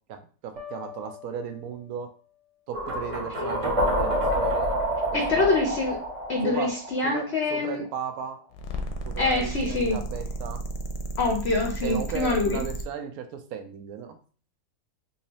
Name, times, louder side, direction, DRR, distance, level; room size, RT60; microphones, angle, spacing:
voice 1, 0.4-2.1 2.7-4.8 5.3-5.8 6.4-6.7 7.0-7.2 7.5-8.4 9.0-10.6 11.8-14.2, right 7 dB, 70° right, 7 dB, 1.0 m, -35 dB
sound 1, 0.6-2.4, left 8 dB, 50° right, 1.2 m, -45 dB
sound 2, 2.7-7.7, equal, 35° right, 0.5 m, -28 dB
voice 2, 5.1-6.0 6.3-7.8 9.2-10.0 11.2-12.6, left 3 dB, 60° left, 1 dB, 0.7 m, -25 dB
sound 3, 8.5-12.9, right 2 dB, 85° left, 1.2 m, -33 dB
3.7 x 2.8 x 3.0 m, 0.41 s
omnidirectional pair, 1.7 m